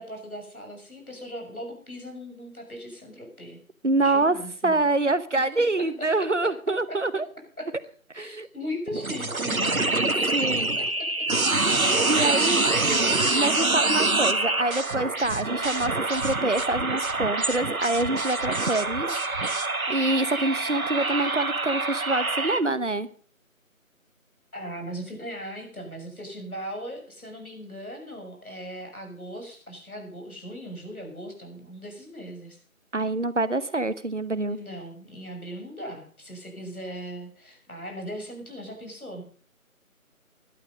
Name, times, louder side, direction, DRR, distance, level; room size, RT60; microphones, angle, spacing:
voice 1, 0.0-3.6 4.0-4.8 5.6-6.5 6.9-7.0 7.6-7.7 8.1-9.8 10.1-11.3 11.5-13.1 24.5-32.6 34.5-39.2, equal, 80° left, 3 dB, 6.8 m, -39 dB
voice 2, 3.8-4.3 4.6-7.3 8.1-8.5 10.3-10.7 12.0-12.6 13.4-19.1 19.9-23.1 32.9-34.6, right 2 dB, 55° right, 14 dB, 1.1 m, -26 dB
sound 1, 8.9-22.6, right 2 dB, 75° right, 1.5 m, -25 dB
16.0 x 12.0 x 5.3 m, 0.43 s
figure-of-eight pair, 170°, 43 cm